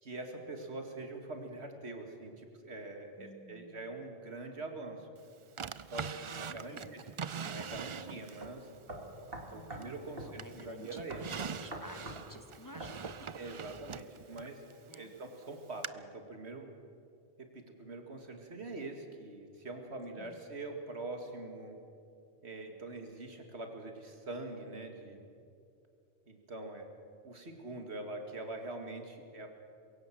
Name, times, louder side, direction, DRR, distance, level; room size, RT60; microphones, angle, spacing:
voice 1, 0.0-5.1 5.9-7.0 7.4-8.7 9.5-11.2 13.4-14.6 14.9-16.7 17.4-21.8 22.4-25.2 26.3-26.9 27.2-29.5, right 2 dB, 90° right, 4 dB, 2.4 m, -44 dB
voice 2, 3.2-4.0 6.1-7.2 9.5-13.3 14.9-15.2 20.2-20.4, equal, 20° left, 8 dB, 0.9 m, -53 dB
Drawer open or close, 5.6-8.5 9.0-10.0 10.4-15.1 15.8-15.9, right 6 dB, 45° right, 0.4 m, -43 dB
sound 1, 7.7-7.9 8.4-8.5 8.9-9.9 10.2-10.3 11.1-12.2 12.8-13.0, right 1 dB, 65° right, 2.8 m, -44 dB
22.5 x 16.5 x 7.5 m, 2.5 s
omnidirectional pair, 1.1 m